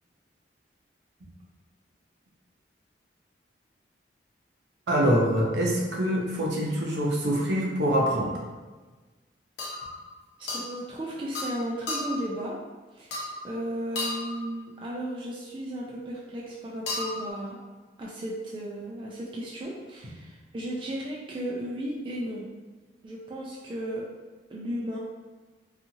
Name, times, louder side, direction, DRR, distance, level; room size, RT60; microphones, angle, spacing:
voice 1, 4.9-8.3, equal, 70° right, -2 dB, 0.6 m, -25 dB
sound 1, 8.2-8.4 9.6-10.0 10.5-10.7 11.3-11.6 11.9-12.3 13.1-13.5 14.0-14.4 16.9-17.3, left 2 dB, 70° left, 0.6 m, -33 dB
voice 2, 10.4-12.6 12.9-17.6 18.0-22.5 23.0-24.1 24.5-25.0, right 1 dB, 30° right, -4 dB, 0.3 m, -35 dB
2.7 x 2.4 x 2.7 m, 1.3 s
head